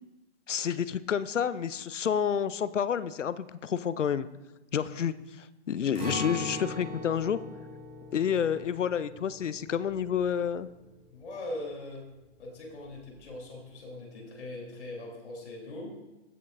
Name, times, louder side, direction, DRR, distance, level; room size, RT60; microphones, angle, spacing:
voice 1, 0.5-4.3 4.7-7.4 8.1-10.7, left 8 dB, 85° left, 15 dB, 0.6 m, -29 dB
voice 2, 4.8-5.1 8.3-8.5 11.1-12.1 12.4-16.0, left 1 dB, 70° left, -2 dB, 3.6 m, -41 dB
Acoustic guitar, 5.9-11.8 12.2-12.3 12.8-13.3, left 1 dB, 25° right, 2.4 m, -40 dB
16.5 x 6.6 x 2.6 m, 1.0 s
hypercardioid pair, 130°, 36 cm